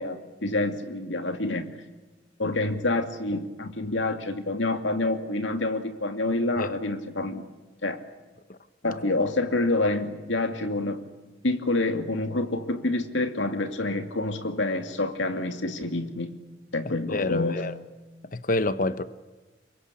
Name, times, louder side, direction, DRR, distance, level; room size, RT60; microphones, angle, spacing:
voice 1, 0.0-1.7 2.4-7.5 7.8-8.0 8.8-11.0 11.4-16.4 16.7-17.7, left 2 dB, 80° left, 2.5 m, -27 dB
voice 2, 17.1-17.7 18.3-19.0, left 2 dB, 45° left, 1.0 m, -27 dB
25.5 x 23.0 x 8.5 m
head